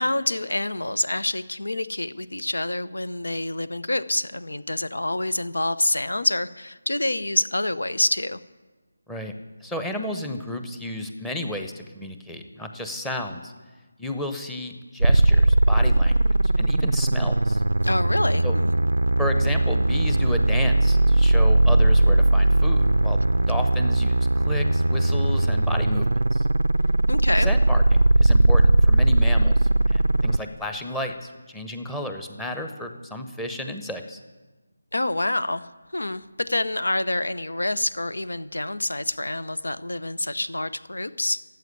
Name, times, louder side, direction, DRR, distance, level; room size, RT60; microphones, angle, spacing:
voice 1, 0.0-8.4 17.8-18.7 27.1-27.5 34.9-35.7 35.9-41.4, left 1 dB, 70° left, 15 dB, 0.8 m, -27 dB
voice 2, 9.6-13.5 14.0-17.6 18.4-18.5 19.2-23.2 23.5-26.5 27.4-34.2, left 1 dB, 5° left, 5 dB, 0.9 m, -33 dB
sound 1, 15.0-30.4, right 1 dB, 70° right, 0.5 m, -19 dB
14.0 x 8.0 x 9.7 m, 1.3 s
figure-of-eight pair, 160°, 0 cm